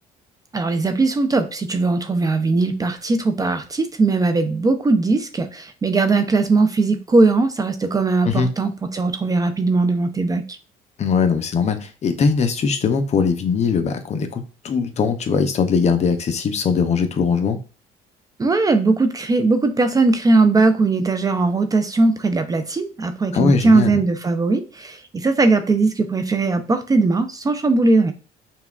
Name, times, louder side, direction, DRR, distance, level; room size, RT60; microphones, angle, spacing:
voice 1, 0.5-10.4 18.4-28.1, right 3 dB, 20° right, 0.4 m, -19 dB
voice 2, 11.0-17.6 23.3-24.0, left 5 dB, 40° left, 0.6 m, -20 dB
5.5 x 2.3 x 2.4 m
cardioid pair, 110°, 17 cm